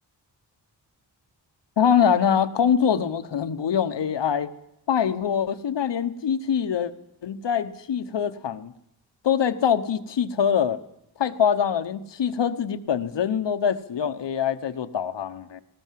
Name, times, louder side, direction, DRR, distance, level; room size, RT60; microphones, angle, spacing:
voice 1, 1.8-4.5 4.9-6.9 7.2-8.7 9.2-10.8 11.2-15.6, left 8 dB, 80° left, 11 dB, 1.2 m, -24 dB
19.5 x 18.5 x 7.6 m, 0.82 s
wide cardioid pair, 100°, 42 cm